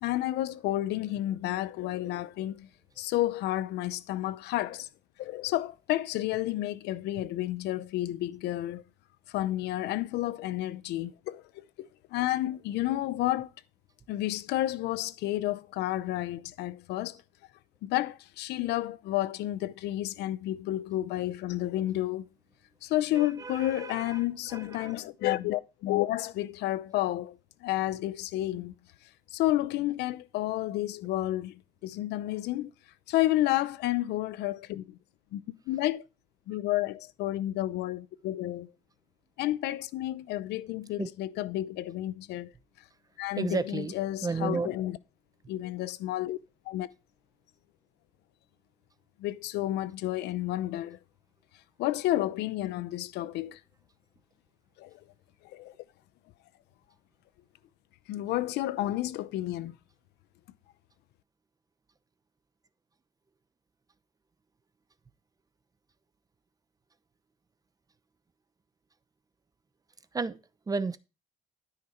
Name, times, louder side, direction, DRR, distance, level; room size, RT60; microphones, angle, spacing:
voice 1, 0.0-2.7 3.0-4.9 5.2-8.8 9.3-13.5 14.1-17.2 17.8-22.3 22.8-28.7 29.3-32.7 33.1-35.0 35.3-36.0 36.5-38.7 39.4-42.5 43.2-45.0 45.5-46.4 46.7-46.9 49.2-51.0 51.8-53.6 54.8-55.0 55.4-55.7 58.1-59.8, left 15 dB, 80° left, 0.7 m, -31 dB
voice 2, 23.1-24.2 24.5-24.9 41.0-41.1 43.4-44.0 44.2-44.7 70.1-70.4 70.7-71.0, right 4 dB, 20° right, 0.8 m, -32 dB
13.0 x 5.8 x 4.5 m
cardioid pair, 110°, 17 cm